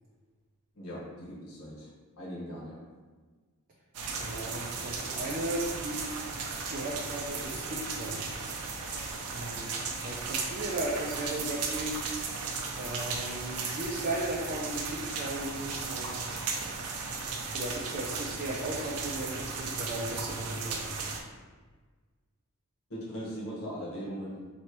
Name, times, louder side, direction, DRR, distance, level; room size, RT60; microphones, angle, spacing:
voice 1, 0.7-1.9 2.2-2.8 22.9-24.4, equal, 70° left, -7 dB, 1.3 m, -39 dB
sound 1, 3.9-21.2, right 4 dB, 85° right, 0.6 m, -36 dB
voice 2, 4.2-6.2 6.7-8.2 9.3-12.2 12.7-16.3 17.5-20.9, right 1 dB, 40° right, -3 dB, 0.5 m, -36 dB
3.1 x 2.9 x 4.6 m, 1.4 s
head